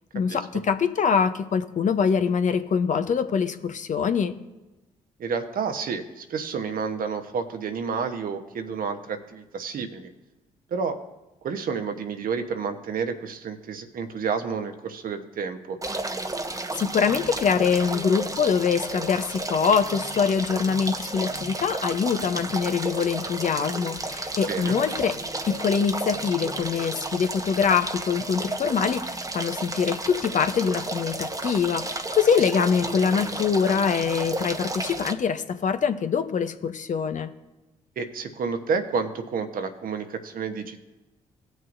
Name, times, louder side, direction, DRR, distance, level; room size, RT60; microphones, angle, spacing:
voice 1, 0.1-4.4 16.8-25.1 25.5-37.3, left 6 dB, 50° left, 9 dB, 0.8 m, -24 dB
voice 2, 5.2-10.1 10.7-11.0 11.4-15.8 24.5-24.8 32.6-32.7 38.0-40.8, right 5 dB, 60° right, 7 dB, 1.0 m, -30 dB
sound 1, 15.8-35.1, right 2 dB, 20° right, 1.0 m, -32 dB
17.5 x 6.3 x 2.6 m, 1.0 s
hypercardioid pair, 45°, 16 cm